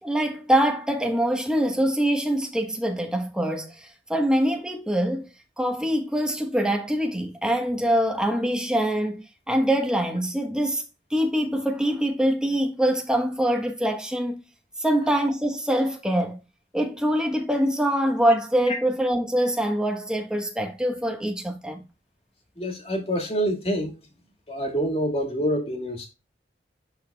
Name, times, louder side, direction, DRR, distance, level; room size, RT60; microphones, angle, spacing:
voice 1, 0.0-5.3 5.6-10.8 11.1-14.4 14.8-16.4 16.7-21.8, equal, 5° right, 1.0 m, -24 dB
voice 2, 22.6-23.9 24.5-26.1, equal, 35° left, 1.8 m, -26 dB
11.5 x 4.0 x 2.2 m
head